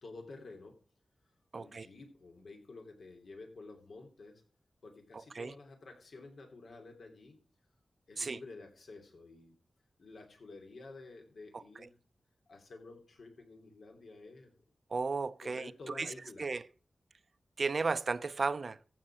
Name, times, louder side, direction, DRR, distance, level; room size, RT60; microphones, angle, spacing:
voice 1, 0.0-0.8 1.5-4.4 4.8-7.4 8.1-9.6 10.0-12.0 12.5-14.5 15.4-16.6, left 3 dB, 80° left, 3.0 m, -51 dB
voice 2, 1.5-1.9 5.3-5.5 8.2-8.4 11.5-11.9 14.9-16.1 16.4-16.7 17.6-18.8, right 4 dB, 60° right, 0.7 m, -34 dB
15.0 x 5.4 x 7.5 m
wide cardioid pair, 70°, 0 cm